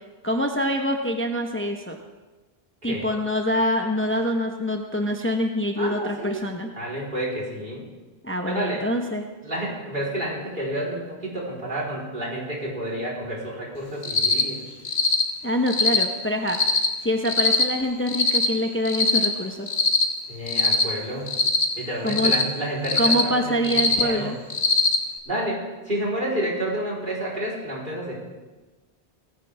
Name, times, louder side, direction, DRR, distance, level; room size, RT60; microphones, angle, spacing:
voice 1, 0.2-2.0 2.8-6.7 8.2-9.2 15.4-16.6 17.0-19.7 22.0-22.3 23.0-24.4, equal, 15° left, 3 dB, 0.9 m, -25 dB
voice 2, 5.8-6.5 6.7-7.8 8.5-8.8 9.4-14.6 20.3-21.3 21.8-24.3 25.3-28.2, right 1 dB, 55° right, -4 dB, 4.0 m, -30 dB
Cricket, 14.0-14.4 14.8-15.2 15.7-16.0 16.5-16.9 17.2-17.6 18.1-18.5 18.8-19.3 19.7-20.0 20.5-20.8 21.3-21.6 22.1-22.4 22.8-23.2 23.6-24.0 24.5-25.0, left 3 dB, 90° left, 1.5 m, -21 dB
18.0 x 15.0 x 3.4 m, 1.2 s
omnidirectional pair, 1.1 m